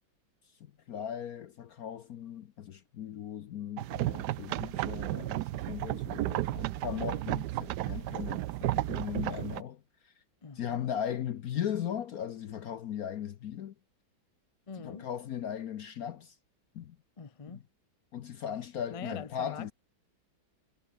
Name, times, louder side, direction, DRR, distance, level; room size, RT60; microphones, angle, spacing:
voice 1, 0.6-10.1 10.5-13.7 14.8-16.4 16.7-17.0 17.5-17.6 18.1-19.7, left 9 dB, 60° left, 1.0 m, -38 dB
sound 1, 3.8-9.6, right 15 dB, 70° right, 1.0 m, -33 dB
voice 2, 10.4-10.8 14.7-15.1 17.2-17.6 18.9-19.7, left 5 dB, 30° left, 0.6 m, -43 dB
omnidirectional pair, 2.2 m